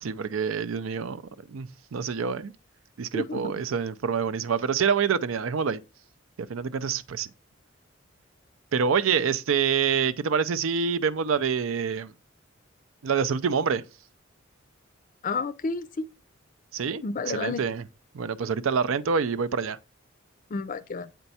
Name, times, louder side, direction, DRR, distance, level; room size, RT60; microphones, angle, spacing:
voice 1, 0.0-2.5 3.0-5.8 6.4-7.3 8.7-12.1 13.0-13.8 16.7-17.8 18.1-19.8, right 6 dB, 85° right, 0.5 m, -26 dB
voice 2, 15.2-16.1 17.0-17.6 20.5-21.1, left 4 dB, 40° left, 0.4 m, -30 dB
8.0 x 4.5 x 4.1 m
head